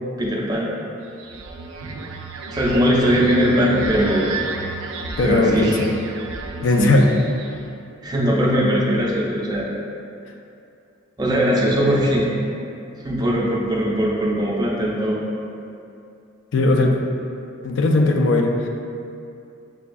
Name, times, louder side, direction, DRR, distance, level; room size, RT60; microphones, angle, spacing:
voice 1, 0.2-0.7 2.5-4.3 5.2-5.8 6.7-7.0 8.0-9.7 11.2-12.3 13.0-15.2, equal, 20° right, -5 dB, 0.5 m, -20 dB
sound 1, 1.1-7.7, right 3 dB, 85° right, 0.3 m, -32 dB
voice 2, 5.2-5.9 6.6-7.1 16.5-17.0 17.6-18.7, left 2 dB, 65° left, 3 dB, 0.4 m, -18 dB
6.1 x 2.3 x 2.5 m, 2.6 s
head